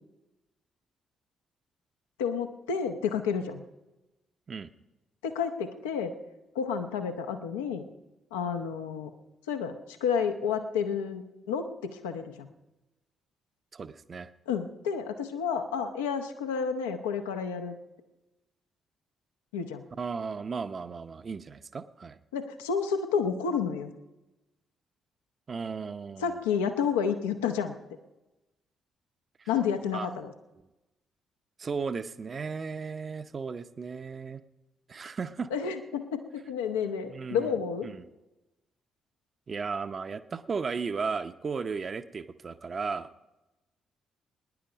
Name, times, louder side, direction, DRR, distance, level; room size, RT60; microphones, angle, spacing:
voice 1, 2.2-3.6 5.2-6.1 6.5-7.9 8.3-9.1 9.5-12.5 14.5-17.7 19.5-19.8 22.3-23.9 26.2-27.7 29.5-30.3 35.5-37.9, left 6 dB, 75° left, 7 dB, 0.9 m, -30 dB
voice 2, 13.7-14.3 20.0-22.2 25.5-26.4 29.4-29.5 29.9-30.2 31.6-34.4 34.9-35.5 37.1-37.6 37.8-38.1 39.5-43.1, right 5 dB, 40° right, 11 dB, 0.7 m, -35 dB
21.0 x 10.5 x 5.1 m, 1.0 s
figure-of-eight pair, 40°, 0 cm